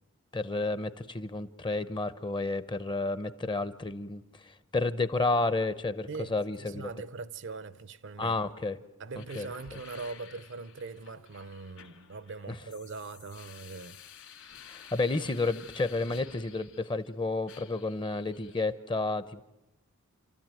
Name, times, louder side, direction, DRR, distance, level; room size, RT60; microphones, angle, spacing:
voice 1, 0.3-4.2 4.7-6.9 8.2-8.8 9.2-9.5 12.5-12.6 14.7-19.4, left 3 dB, 20° left, 0.7 m, -31 dB
voice 2, 6.6-8.4 9.0-14.0 14.4-14.5, right 4 dB, 55° right, 0.7 m, -41 dB
sound 1, 9.1-17.1 17.5-18.7, left 8 dB, 65° left, 2.5 m, -52 dB
29.5 x 13.5 x 9.0 m
head